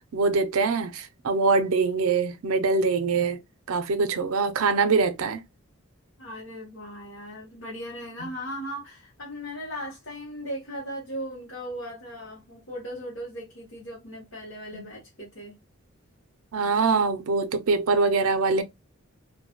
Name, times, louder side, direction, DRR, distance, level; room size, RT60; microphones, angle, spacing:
voice 1, 0.1-3.4 3.7-5.4 8.2-8.3 14.7-14.9 16.5-18.6, right 4 dB, 75° right, 0.4 m, -23 dB
voice 2, 6.2-15.6, equal, 60° left, 0.9 m, -37 dB
2.2 x 2.0 x 2.8 m
head